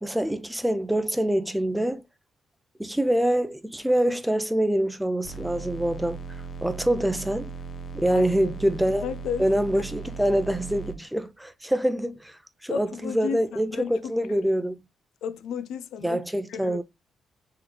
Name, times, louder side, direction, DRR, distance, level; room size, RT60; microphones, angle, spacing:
voice 1, 0.0-2.0 2.8-6.2 6.6-7.5 7.9-9.1 9.4-14.8 16.0-16.8, right 1 dB, 5° right, 0.6 m, -25 dB
sound 1, 5.2-10.9, right 5 dB, 50° left, 0.7 m, -38 dB
voice 2, 8.0-8.5 9.0-9.5 12.7-14.0 14.3-14.4 15.2-16.2 16.5-16.8, left 7 dB, 85° left, 0.4 m, -33 dB
4.0 x 3.2 x 3.1 m
cardioid pair, 95°, 0 cm